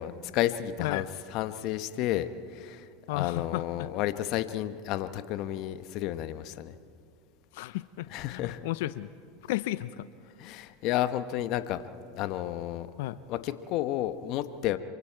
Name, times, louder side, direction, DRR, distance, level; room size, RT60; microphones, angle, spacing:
voice 1, 0.0-6.7 8.1-8.6 10.4-11.9 12.1-12.9 13.3-14.8, left 13 dB, 55° left, 11 dB, 1.0 m, -31 dB
voice 2, 3.1-3.6 7.5-9.1 9.5-10.0 13.0-13.2, left 16 dB, 70° left, 15 dB, 0.6 m, -33 dB
27.5 x 24.0 x 4.6 m, 2.2 s
hypercardioid pair, 100°, 0 cm